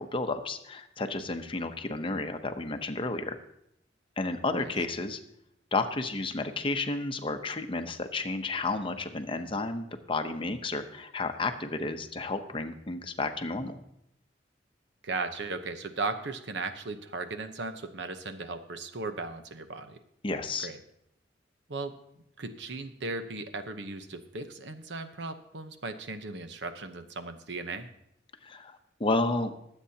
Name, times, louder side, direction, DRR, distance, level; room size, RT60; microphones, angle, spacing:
voice 1, 0.0-3.4 4.2-5.2 5.7-13.8 20.2-20.7 28.4-29.5, left 3 dB, 30° left, 7 dB, 0.8 m, -32 dB
voice 2, 15.0-20.0 20.6-20.8 21.7-21.9 22.4-27.9, right 3 dB, 80° right, 8 dB, 0.9 m, -37 dB
23.0 x 8.1 x 2.8 m, 0.77 s
head